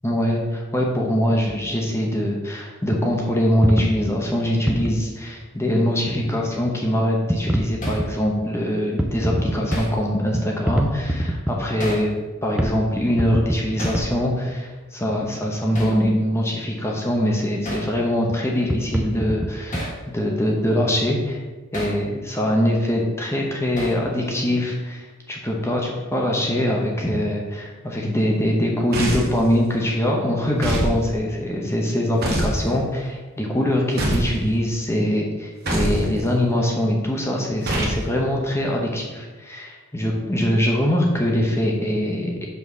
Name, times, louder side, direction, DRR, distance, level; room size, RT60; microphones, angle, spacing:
voice 1, 0.0-12.1 12.4-21.4 21.7-42.4, equal, 10° left, -1 dB, 0.9 m, -23 dB
sound 1, 1.5-1.7 2.1-2.2 2.9-3.1 3.6-5.0 6.1-6.2 6.6-6.7 7.3-8.1 8.9-9.9 10.3-11.6 12.2-12.3 12.6-12.8 13.0-14.1 14.5-14.6 16.4-16.6 18.3-18.4 18.6-19.8, equal, 5° right, 0.4 m, -24 dB
Hammer, 7.8-8.1 9.7-10.0 11.8-12.1 13.8-14.1 15.7-16.0 17.7-17.9 19.7-20.0 21.7-22.0 23.8-24.1, equal, 35° left, 1.4 m, -31 dB
sound 2, 28.9-29.4 30.6-31.0 32.2-32.6 34.0-34.4 35.7-36.0 37.6-38.0, right 1 dB, 45° right, 1.3 m, -23 dB
5.5 x 4.3 x 6.2 m, 1.3 s
head